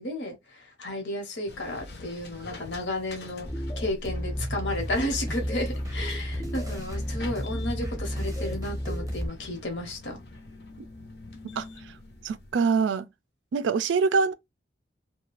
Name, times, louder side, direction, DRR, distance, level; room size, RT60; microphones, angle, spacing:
voice 1, 0.0-3.5 3.8-10.2, left 1 dB, 85° left, 1.0 m, -33 dB
sound 1, 1.5-12.5, left 2 dB, 60° left, 0.6 m, -45 dB
sound 2, 3.5-9.3, equal, 20° left, 0.4 m, -32 dB
sound 3, 4.4-9.2, right 1 dB, 15° right, 0.7 m, -41 dB
voice 2, 11.6-11.9 12.2-13.1 13.5-14.3, right 5 dB, 85° right, 0.3 m, -25 dB
2.4 x 2.2 x 2.9 m
head